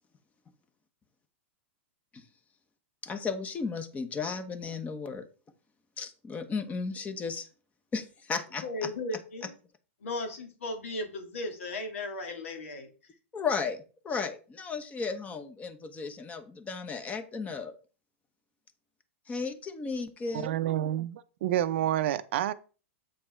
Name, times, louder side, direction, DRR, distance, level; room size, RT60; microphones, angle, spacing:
voice 1, 3.0-5.3 6.0-7.5 7.9-8.9 13.3-17.8 19.3-20.5, left 5 dB, 20° left, 1.1 m, -34 dB
voice 2, 8.6-9.5 10.0-12.9, left 2 dB, 80° left, 2.4 m, -36 dB
voice 3, 20.3-22.5, right 12 dB, 65° right, 0.6 m, -29 dB
7.6 x 4.6 x 4.4 m
hypercardioid pair, 120°, 7 cm